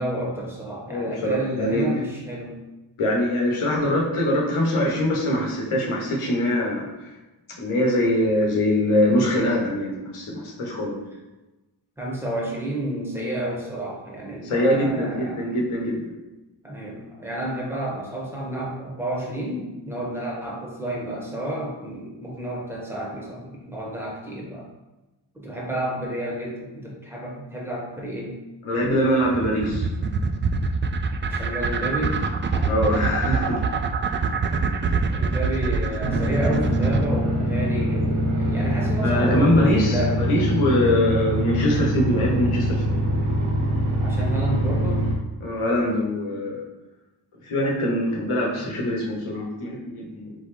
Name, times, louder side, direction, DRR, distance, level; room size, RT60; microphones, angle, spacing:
voice 1, 0.0-2.6 12.0-15.4 16.6-24.7 25.3-28.4 31.2-32.7 35.1-40.2 44.0-45.1 50.3-50.4, right 1 dB, 5° right, -4 dB, 1.5 m, -30 dB
voice 2, 0.9-1.8 3.0-7.1 7.6-10.9 14.4-16.0 28.6-29.9 32.7-33.6 34.9-35.0 39.0-43.1 45.4-46.6 47.4-50.3, left 1 dB, 90° left, -2 dB, 1.0 m, -23 dB
sound 1, 28.8-37.1, right 5 dB, 25° right, 0.3 m, -24 dB
sound 2, 36.0-45.1, equal, 90° right, 0.9 m, -24 dB
3.9 x 3.3 x 3.3 m, 1.1 s
cardioid pair, 45°, 48 cm